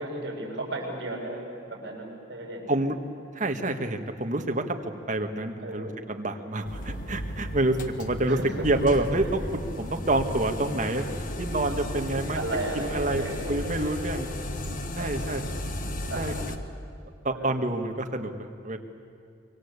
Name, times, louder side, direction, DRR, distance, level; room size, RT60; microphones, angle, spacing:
voice 1, 0.0-2.9 5.6-5.9 8.3-8.7 8.9-9.0 12.3-14.3 14.9-15.4 16.1-16.5 17.3-17.6, right 2 dB, 65° right, 0 dB, 7.2 m, -35 dB
voice 2, 3.3-8.4 8.6-12.4 12.7-14.3 15.0-15.4 16.1-16.3 17.2-18.8, right 2 dB, 45° right, 4 dB, 1.7 m, -28 dB
sound 1, 6.6-16.6, left 1 dB, 45° left, 1.4 m, -34 dB
25.5 x 23.5 x 8.3 m, 2.3 s
head